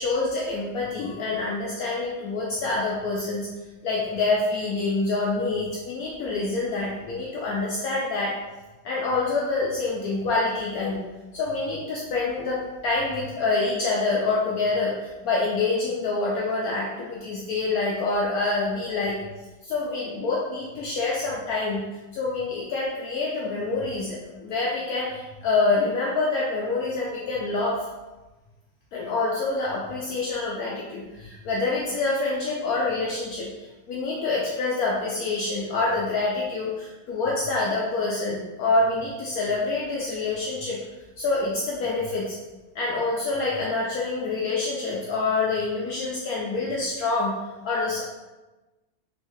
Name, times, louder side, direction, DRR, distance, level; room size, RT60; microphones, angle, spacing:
voice 1, 0.0-3.5 3.8-8.4 8.8-11.0 11.3-19.2 19.6-21.8 22.1-27.8 28.9-33.5 33.9-40.8 41.2-42.4 42.7-47.3 47.6-48.0, left 3 dB, 70° left, -4 dB, 1.0 m, -26 dB
3.7 x 3.1 x 3.0 m, 1.1 s
omnidirectional pair, 1.8 m